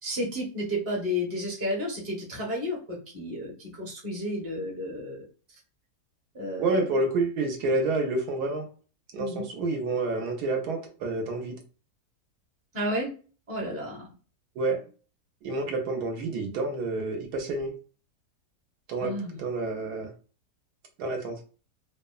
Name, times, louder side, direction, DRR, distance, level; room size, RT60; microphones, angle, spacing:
voice 1, 0.0-5.2 6.3-6.8 9.2-9.4 12.7-13.1 13.5-14.1 19.0-19.4, left 1 dB, 15° right, -3 dB, 0.6 m, -32 dB
voice 2, 6.6-8.7 9.1-11.6 14.6-14.8 15.4-17.7 18.9-20.1 21.0-21.4, right 2 dB, 80° right, 3 dB, 1.2 m, -29 dB
2.9 x 2.0 x 2.2 m, 0.37 s
omnidirectional pair, 1.7 m